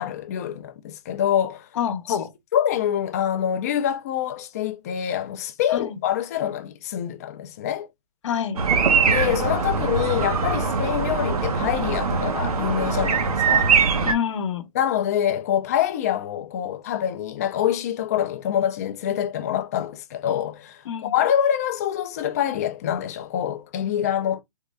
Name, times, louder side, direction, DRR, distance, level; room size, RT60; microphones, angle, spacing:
voice 1, 0.0-1.7 2.1-2.2 2.5-7.9 9.0-13.7 14.7-24.4, left 10 dB, 25° left, 0.4 m, -25 dB
voice 2, 1.8-2.3 5.7-6.0 8.2-8.6 14.0-14.7 20.9-21.1, left 8 dB, 55° left, 0.8 m, -27 dB
sound 1, 8.6-14.1, right 5 dB, 80° right, 0.8 m, -22 dB
3.6 x 2.2 x 3.2 m
hypercardioid pair, 160°, 19 cm